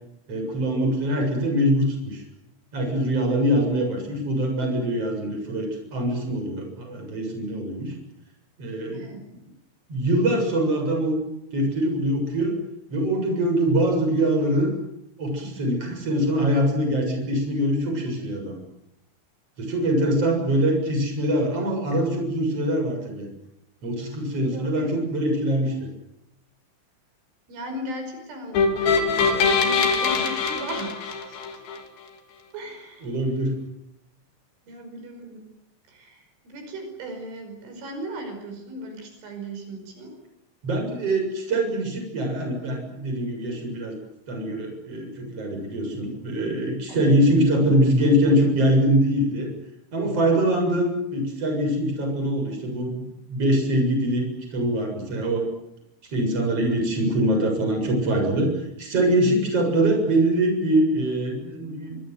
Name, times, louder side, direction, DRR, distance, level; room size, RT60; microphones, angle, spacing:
voice 1, 0.3-2.2 2.7-7.9 8.6-9.2 9.9-11.2 11.5-12.6 12.9-14.7 15.2-18.5 19.6-23.3 23.8-25.9 33.0-33.6 40.6-43.9 44.3-49.5 49.9-52.9 53.3-55.4 56.1-58.5 58.8-62.0, right 1 dB, 30° right, 3 dB, 8.0 m, -23 dB
voice 2, 24.5-24.9 27.5-31.4 32.5-33.1 34.7-35.5 35.9-40.2 46.9-47.2, right 1 dB, 80° right, 5 dB, 7.7 m, -37 dB
sound 1, 28.5-31.8, left 5 dB, 70° left, 5.2 m, -22 dB
25.5 x 25.0 x 7.9 m, 0.84 s
omnidirectional pair, 5.5 m